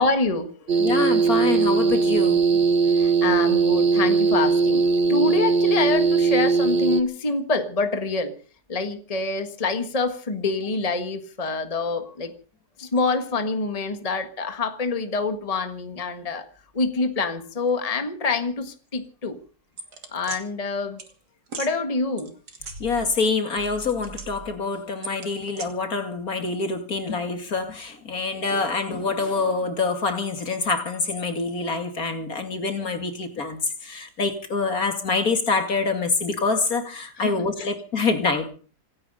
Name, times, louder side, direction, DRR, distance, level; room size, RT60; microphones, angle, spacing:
voice 1, 0.0-0.8 2.9-4.8 5.1-8.3 8.7-12.3 12.8-16.5 16.7-19.4 20.1-21.0 21.6-22.3 37.2-37.7, left 3 dB, 25° left, 1.5 m, -26 dB
sound 1, 0.7-7.0, right 5 dB, 35° right, 1.1 m, -20 dB
voice 2, 0.8-2.4 22.8-38.5, left 4 dB, 65° left, 2.9 m, -26 dB
sound 2, 19.8-20.4 21.0-21.1 21.5-21.7 22.2-23.3 23.6-24.5 25.0-25.7, right 4 dB, 90° right, 3.0 m, -38 dB
26.5 x 9.8 x 5.4 m
omnidirectional pair, 1.7 m